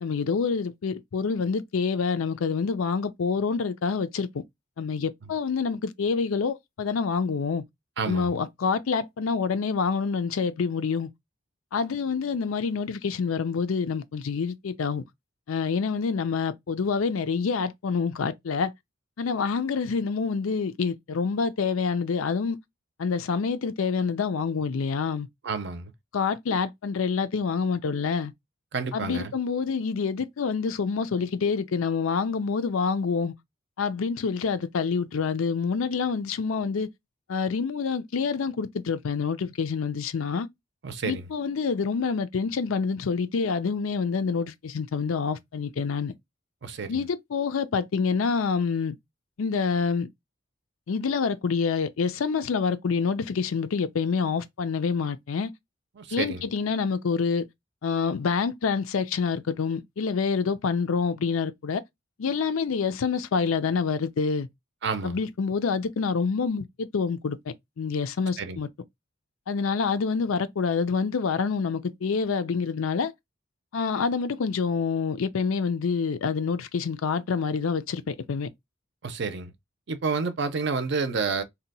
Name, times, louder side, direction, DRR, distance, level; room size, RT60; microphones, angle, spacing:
voice 1, 0.0-4.3 4.8-7.6 8.1-11.1 11.7-15.0 15.5-18.7 19.2-22.6 23.0-25.3 26.1-28.3 28.9-33.3 33.8-36.9 37.3-40.5 41.0-46.1 46.9-49.0 49.4-50.1 50.9-55.5 56.1-57.5 57.8-61.8 62.2-64.5 65.0-68.7 69.5-73.1 73.7-78.5, left 5 dB, 80° left, 0.5 m, -27 dB
voice 2, 8.0-8.3 25.4-25.9 28.7-29.3 40.8-41.3 46.6-47.0 56.0-56.4 64.8-65.2 68.4-68.6 79.0-79.5 79.9-81.4, right 4 dB, 55° right, 0.5 m, -29 dB
2.8 x 2.2 x 4.0 m
head